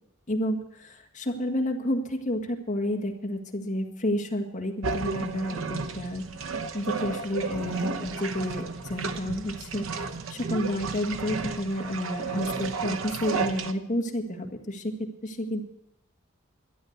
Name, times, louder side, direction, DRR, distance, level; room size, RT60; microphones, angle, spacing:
voice 1, 0.3-15.6, left 1 dB, 35° left, 2 dB, 1.8 m, -30 dB
sound 1, 4.8-13.7, right 4 dB, 70° right, 0.9 m, -33 dB
12.5 x 10.0 x 8.1 m, 0.84 s
head